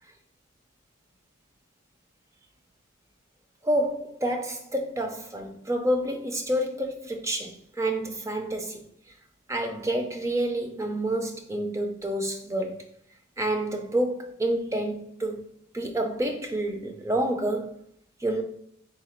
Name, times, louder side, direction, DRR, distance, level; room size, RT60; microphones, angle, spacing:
voice 1, 3.6-8.8 9.5-12.8 13.4-15.4 15.7-17.7 18.2-18.4, right 1 dB, 15° right, 0.4 m, -28 dB
3.9 x 2.3 x 4.3 m
head